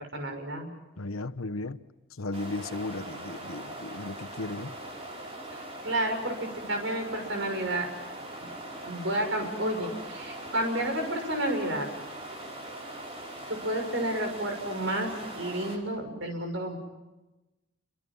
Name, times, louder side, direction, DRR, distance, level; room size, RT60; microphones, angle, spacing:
voice 1, 0.1-0.7 5.5-7.9 8.4-8.5 8.8-11.9 13.5-15.1 15.4-16.8, right 1 dB, 60° right, 5 dB, 6.5 m, -31 dB
voice 2, 1.0-1.8 2.1-4.8, left 2 dB, 85° left, 12 dB, 1.1 m, -35 dB
sound 1, 2.3-15.8, right 1 dB, 30° right, 4.9 m, -41 dB
29.5 x 25.5 x 5.6 m, 1.0 s
head